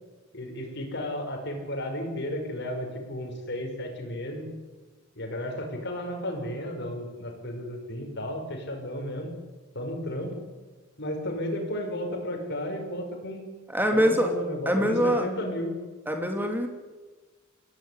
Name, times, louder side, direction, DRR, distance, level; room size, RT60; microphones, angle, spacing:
voice 1, 0.3-4.5 5.2-9.4 9.7-10.4 11.0-13.5 13.9-15.8, left 1 dB, 55° left, 4 dB, 5.5 m, -33 dB
voice 2, 13.7-14.3 14.6-15.3 16.1-16.7, equal, 10° right, 5 dB, 3.0 m, -24 dB
24.0 x 17.0 x 9.9 m, 1.3 s
head